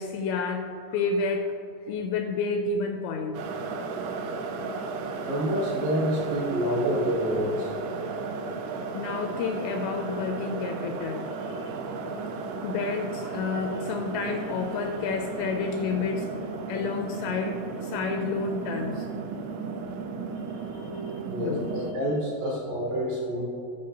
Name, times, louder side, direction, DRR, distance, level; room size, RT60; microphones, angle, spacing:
voice 1, 0.0-1.5 1.9-3.5 8.9-11.8 12.6-19.1 20.5-21.9 22.5-22.6, left 4 dB, 85° left, 3 dB, 2.5 m, -30 dB
sound 1, 3.3-21.9, right 4 dB, 80° right, 3.0 m, -34 dB
voice 2, 5.2-7.7 19.4-19.5 21.2-23.5, equal, 65° right, -4 dB, 2.4 m, -28 dB
15.0 x 5.1 x 2.8 m, 2.9 s
omnidirectional pair, 5.4 m